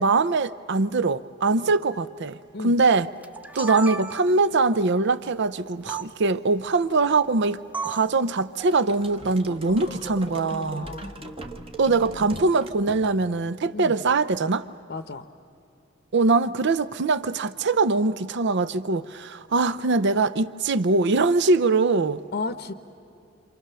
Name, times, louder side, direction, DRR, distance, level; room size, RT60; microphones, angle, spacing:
voice 1, 0.0-2.4 2.6-3.1 3.5-10.9 11.8-14.7 16.1-22.2, right 3 dB, 60° right, 0.6 m, -22 dB
sound 1, 3.2-4.5 5.9-6.1 7.7-8.2, right 4 dB, 10° right, 0.7 m, -33 dB
sound 2, 8.6-13.4, right 2 dB, 30° right, 1.4 m, -40 dB
voice 2, 9.7-11.3 13.7-14.0 14.9-15.3 22.3-22.7, left 3 dB, 50° left, 0.8 m, -35 dB
28.0 x 27.5 x 6.9 m
head